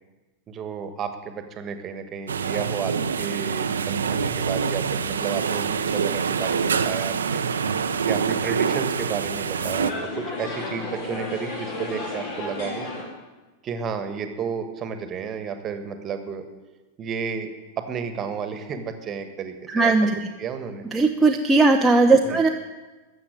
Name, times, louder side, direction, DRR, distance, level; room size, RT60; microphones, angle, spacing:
voice 1, 0.5-7.4 8.1-12.9 13.6-16.4 17.0-17.5 17.8-19.9 20.4-20.9 22.2-22.4, right 6 dB, 30° right, 9 dB, 1.5 m, -32 dB
sound 1, 2.3-9.9, right 6 dB, 70° right, 0.7 m, -25 dB
sound 2, 9.6-13.0, left 2 dB, 50° left, 3.8 m, -32 dB
voice 2, 19.7-20.1 20.9-22.5, right 3 dB, 10° right, 2 dB, 0.8 m, -18 dB
14.0 x 7.4 x 8.9 m, 1.2 s
figure-of-eight pair, 90°, 0 cm